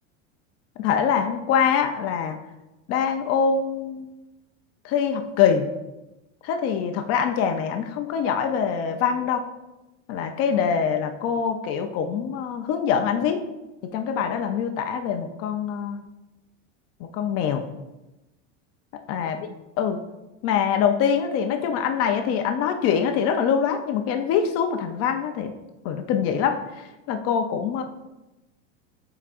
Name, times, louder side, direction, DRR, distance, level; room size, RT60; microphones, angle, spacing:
voice 1, 0.8-2.4 2.9-4.1 4.8-5.7 6.4-9.4 10.1-13.4 13.9-16.0 17.1-17.6 19.1-20.0 20.4-25.5 25.8-27.8, left 7 dB, 40° left, 5 dB, 0.6 m, -24 dB
14.5 x 4.9 x 2.5 m, 1.0 s
supercardioid pair, 150°, 37 cm